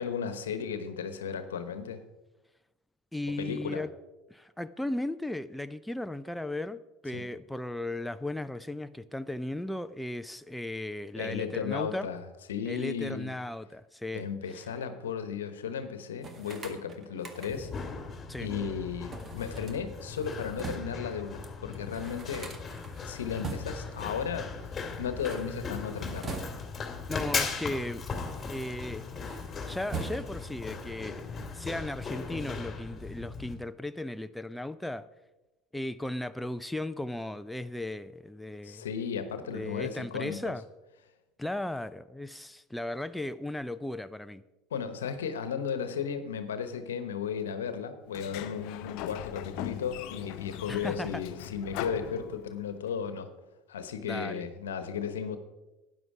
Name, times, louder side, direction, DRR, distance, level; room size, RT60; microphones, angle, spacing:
voice 1, 0.0-2.0 3.4-3.8 7.1-7.2 11.2-12.2 12.5-13.3 14.1-17.7 18.4-22.5 23.0-24.7 25.0-26.4 38.6-40.4 44.7-53.3 53.7-55.4, left 7 dB, 85° left, 10 dB, 1.1 m, -35 dB
voice 2, 3.1-3.9 4.3-12.1 12.7-14.3 18.3-18.5 27.1-28.0 28.5-29.1 29.7-35.1 35.7-38.8 39.5-40.6 41.4-44.4 50.7-51.2 54.0-54.5, left 1 dB, 5° left, 12 dB, 0.5 m, -36 dB
sound 1, 16.2-17.8 19.1-21.1 21.4-21.5 21.7-24.0 25.0-26.9 27.6-28.9 29.2-30.6, right 4 dB, 30° right, 1.8 m, -42 dB
Run, 17.5-33.5, left 5 dB, 30° left, 2.4 m, -38 dB
Sliding door, 48.1-52.8, left 12 dB, 65° left, 0.7 m, -40 dB
12.5 x 9.6 x 4.9 m, 1.0 s
hypercardioid pair, 80°, 0 cm